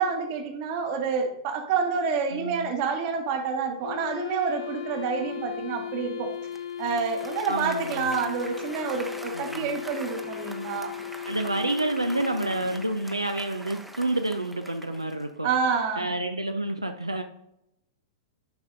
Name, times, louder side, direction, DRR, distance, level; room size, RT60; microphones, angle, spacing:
voice 1, 0.0-6.3 6.8-10.9 15.4-16.1, right 5 dB, 40° right, 5 dB, 1.2 m, -28 dB
voice 2, 2.3-2.7 7.5-8.1 9.3-9.8 11.3-15.5 16.0-17.2, right 2 dB, 90° right, 6 dB, 0.5 m, -29 dB
Wind instrument woodwind instrument, 3.8-13.1, left 10 dB, 70° left, 1.5 m, -37 dB
Applause, 6.4-15.4, right 1 dB, 5° right, 0.7 m, -44 dB
10.5 x 5.3 x 2.6 m, 0.84 s
figure-of-eight pair, 100°, 3 cm